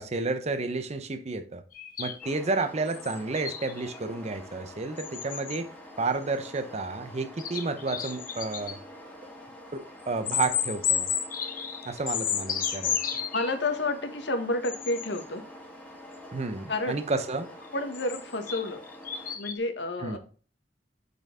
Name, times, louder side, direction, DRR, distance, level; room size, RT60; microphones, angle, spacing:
voice 1, 0.0-1.6 2.0-5.7 6.0-8.8 9.7-11.1 11.9-13.0 16.3-17.5 20.0-20.2, right 3 dB, 40° right, 0.7 m, -31 dB
sound 1, 1.7-4.0 5.0-5.6 6.4-6.5 7.4-8.8 10.3-13.6 14.6-15.2 17.6-19.6, left 8 dB, 50° left, 0.9 m, -32 dB
sound 2, 2.2-19.4, left 1 dB, 10° left, 1.4 m, -46 dB
voice 2, 13.3-15.4 16.7-17.0 17.7-18.8 19.3-20.2, left 2 dB, 80° left, 1.2 m, -30 dB
6.5 x 4.3 x 3.6 m
head